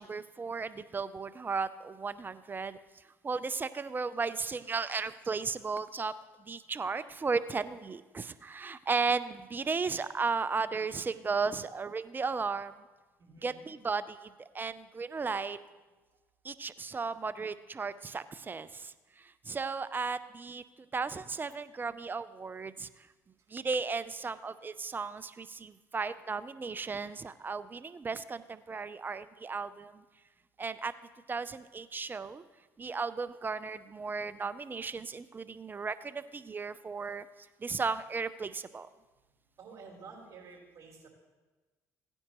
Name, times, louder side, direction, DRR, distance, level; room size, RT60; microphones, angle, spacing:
voice 1, 0.0-2.8 3.2-6.1 6.5-12.8 13.4-15.6 16.4-20.6 20.9-22.9 23.5-30.0 30.6-30.9 31.3-32.4 32.8-37.3 37.6-38.9, right 4 dB, 25° right, 14 dB, 0.5 m, -35 dB
voice 2, 13.2-13.7 39.6-41.1, right 4 dB, 50° right, -2 dB, 4.2 m, -51 dB
17.0 x 9.8 x 3.0 m, 1.2 s
supercardioid pair, 75°, 7 cm